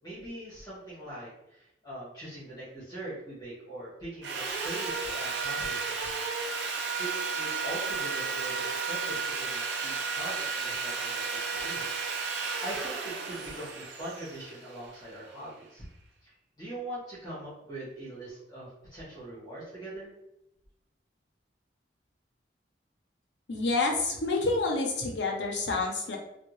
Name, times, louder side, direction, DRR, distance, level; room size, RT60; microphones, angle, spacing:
voice 1, 0.0-6.2 7.0-11.9 12.2-15.8 16.2-16.3 16.6-20.1, right 1 dB, 25° left, -9 dB, 1.4 m, -42 dB
Sawing, 4.2-15.3, right 4 dB, 70° right, 0.6 m, -33 dB
voice 2, 23.5-26.2, left 3 dB, 70° left, 1 dB, 0.7 m, -28 dB
3.5 x 2.3 x 3.0 m, 0.87 s
head